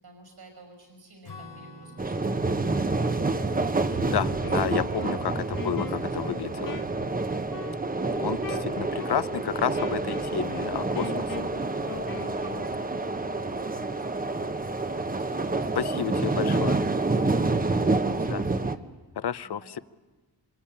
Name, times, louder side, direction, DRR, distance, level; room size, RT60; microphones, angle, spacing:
voice 1, 0.0-4.5 5.8-6.1 12.0-16.4 17.0-18.9 19.4-19.8, right 2 dB, 70° right, 5 dB, 5.8 m, -53 dB
Acoustic guitar / Strum, 1.2-6.0, left 2 dB, 85° left, 4.2 m, -50 dB
sound 1, 2.0-18.8, right 3 dB, 20° right, 1.0 m, -28 dB
voice 2, 4.1-6.8 8.2-11.5 15.8-16.8 18.2-18.4 19.2-19.8, left 9 dB, 70° left, 16 dB, 0.9 m, -31 dB
Wind instrument woodwind instrument, 4.1-12.7, left 6 dB, 50° left, 1.6 m, -41 dB
27.5 x 23.0 x 8.8 m, 1.3 s
wide cardioid pair, 130°, 41 cm